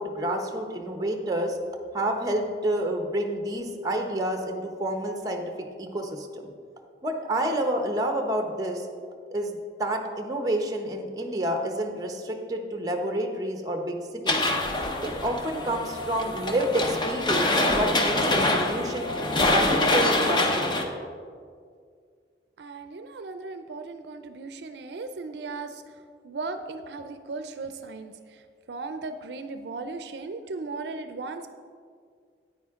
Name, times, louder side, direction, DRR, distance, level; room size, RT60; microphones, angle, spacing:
voice 1, 0.0-1.6 1.9-6.4 7.0-8.9 9.3-14.5 15.0-19.1 19.5-20.9, right 1 dB, 20° right, 4 dB, 0.8 m, -29 dB
sound 1, 14.3-20.8, left 2 dB, 25° left, 0.6 m, -25 dB
voice 2, 22.6-25.8 26.2-28.1 28.7-31.5, right 3 dB, 70° right, 9 dB, 0.4 m, -36 dB
9.4 x 8.8 x 3.6 m, 2.1 s
head